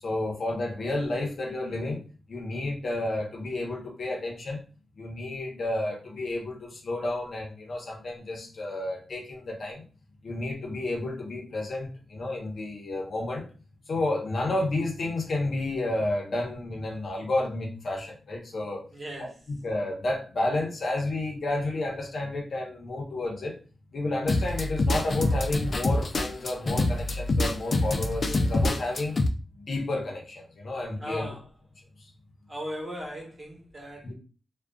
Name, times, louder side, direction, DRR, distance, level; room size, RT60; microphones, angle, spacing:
voice 1, 0.0-2.0 2.3-4.6 5.0-9.8 10.2-13.5 13.9-18.8 19.2-23.6 23.9-29.2 29.5-31.3 34.0-34.1, left 2 dB, 60° left, 0.8 m, -31 dB
voice 2, 18.9-19.4 31.0-31.5 32.5-34.1, equal, 35° right, 1.2 m, -38 dB
sound 1, 24.3-29.3, left 2 dB, 45° left, 0.4 m, -26 dB
2.4 x 2.2 x 2.3 m
cardioid pair, 80°, 0 cm